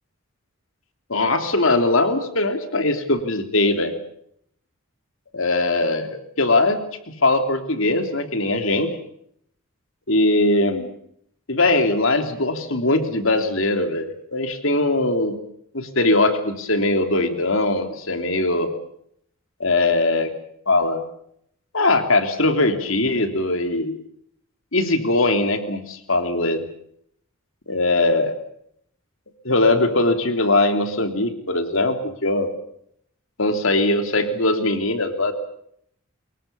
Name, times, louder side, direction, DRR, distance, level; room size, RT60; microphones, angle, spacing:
voice 1, 1.1-3.9 5.3-6.8 7.1-8.9 10.1-10.9 11.5-15.4 15.7-18.7 19.6-20.3 20.7-21.0 21.7-24.0 24.7-26.6 27.7-28.4 29.4-32.5 33.4-35.3, left 2 dB, 65° left, 7 dB, 3.2 m, -21 dB
25.5 x 22.5 x 6.9 m, 0.70 s
head